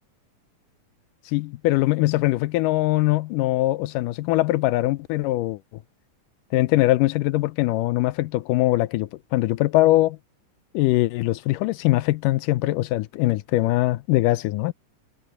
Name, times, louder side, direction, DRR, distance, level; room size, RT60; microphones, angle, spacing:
voice 1, 1.3-5.6 6.5-10.2 10.7-14.7, left 17 dB, 90° left, 2.3 m, -22 dB
omnidirectional pair, 3.7 m